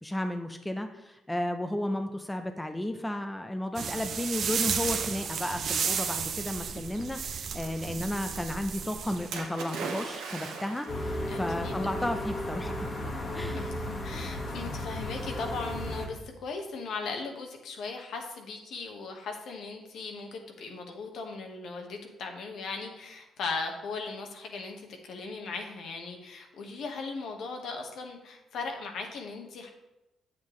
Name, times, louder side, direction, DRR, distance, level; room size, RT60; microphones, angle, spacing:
voice 1, 0.0-12.7 13.3-13.7, left 1 dB, 10° left, 6 dB, 0.6 m, -33 dB
sound 1, 3.8-9.4, right 6 dB, 60° right, 0.6 m, -33 dB
Splash splatter, 9.3-11.1 12.0-12.1, right 4 dB, 90° right, 1.2 m, -37 dB
sound 2, 10.9-16.1, left 1 dB, 40° left, 1.5 m, -34 dB
voice 2, 11.3-11.7 12.0-12.1 13.5-29.7, left 4 dB, 70° left, 3 dB, 1.4 m, -38 dB
8.5 x 7.4 x 3.2 m, 0.93 s
cardioid pair, 90°, 0 cm